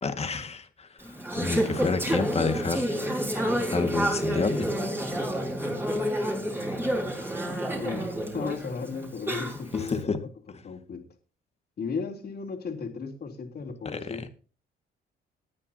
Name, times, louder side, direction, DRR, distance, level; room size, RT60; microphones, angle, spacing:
voice 1, 0.0-3.2 3.7-4.7 9.7-10.2 13.9-14.2, left 4 dB, 30° left, 7 dB, 1.9 m, -30 dB
Conversation / Chatter, 1.0-9.9, right 1 dB, 10° right, 5.1 m, -29 dB
voice 2, 7.8-11.1 11.8-14.3, left 5 dB, 50° left, 1 dB, 3.4 m, -35 dB
19.0 x 9.6 x 2.8 m, 0.37 s
cardioid pair, 90°, 20 cm